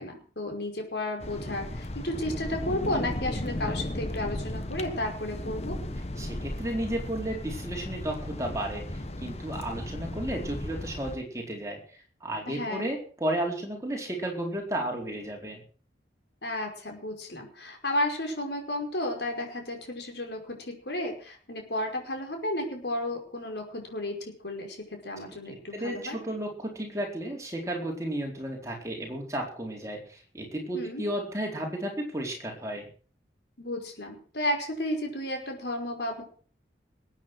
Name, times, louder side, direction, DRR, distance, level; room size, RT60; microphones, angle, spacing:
voice 1, 0.0-5.8 12.5-12.9 16.4-24.2 24.4-26.2 30.7-31.0 33.6-36.2, left 1 dB, 70° left, 2 dB, 5.3 m, -33 dB
sound 1, 1.2-11.2, left 1 dB, 35° left, 1.2 m, -35 dB
voice 2, 6.2-15.6 25.7-32.9, right 1 dB, 15° right, 0 dB, 4.3 m, -33 dB
20.5 x 9.1 x 6.3 m, 0.42 s
head